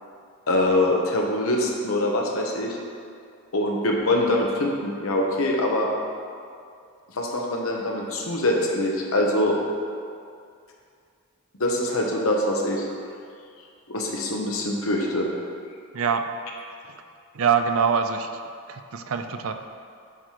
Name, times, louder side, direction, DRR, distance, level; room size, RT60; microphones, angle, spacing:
voice 1, 0.5-2.8 3.5-5.9 7.1-9.6 11.6-12.9 13.9-15.3, left 1 dB, 70° left, 0 dB, 1.1 m, -24 dB
voice 2, 15.9-16.3 17.3-18.3 18.7-19.5, right 6 dB, 65° right, 8 dB, 0.5 m, -24 dB
9.5 x 3.2 x 5.8 m, 2.4 s
head